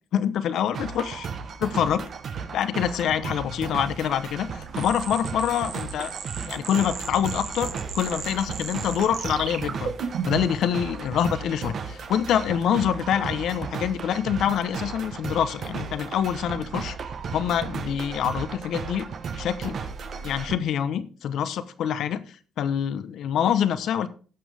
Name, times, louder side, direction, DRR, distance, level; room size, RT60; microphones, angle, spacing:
voice 1, 0.1-1.3 1.6-2.0 2.5-6.1 6.5-9.9 10.2-17.0 17.3-19.1 19.3-19.8 20.2-24.1, left 9 dB, 75° left, 13 dB, 0.9 m, -26 dB
sound 1, 0.7-20.6, right 6 dB, 60° right, 1.3 m, -35 dB
sound 2, 4.8-10.6, right 6 dB, 75° right, 1.7 m, -35 dB
16.5 x 6.1 x 3.5 m, 0.38 s
cardioid pair, 90°, 0 cm